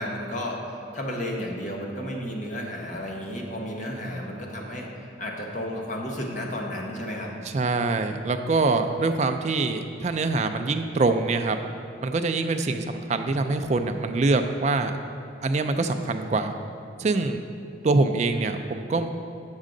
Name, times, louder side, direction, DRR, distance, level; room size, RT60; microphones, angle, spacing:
voice 1, 0.0-7.3, equal, 40° left, -1 dB, 0.9 m, -32 dB
voice 2, 7.5-11.6 12.0-14.9 15.4-16.5 17.0-17.4 17.8-19.1, right 3 dB, 35° right, 7 dB, 0.3 m, -24 dB
7.3 x 6.4 x 3.8 m, 2.7 s
head